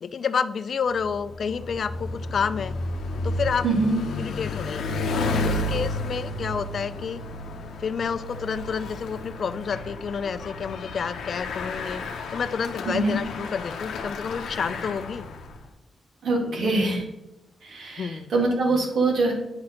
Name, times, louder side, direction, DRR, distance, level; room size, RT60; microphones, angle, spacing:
voice 1, 0.0-2.7 3.2-3.7 4.2-7.2 7.8-12.0 12.3-15.3 16.4-16.9 18.0-18.3, left 6 dB, 50° left, 13 dB, 0.3 m, -29 dB
Bicycle, 1.0-15.6, left 2 dB, 90° left, 0.6 m, -32 dB
voice 2, 3.6-4.0 12.9-13.1 16.2-17.0 17.6-19.3, right 3 dB, 75° right, -1 dB, 1.8 m, -23 dB
8.5 x 4.1 x 2.9 m, 0.94 s
wide cardioid pair, 135°, 0 cm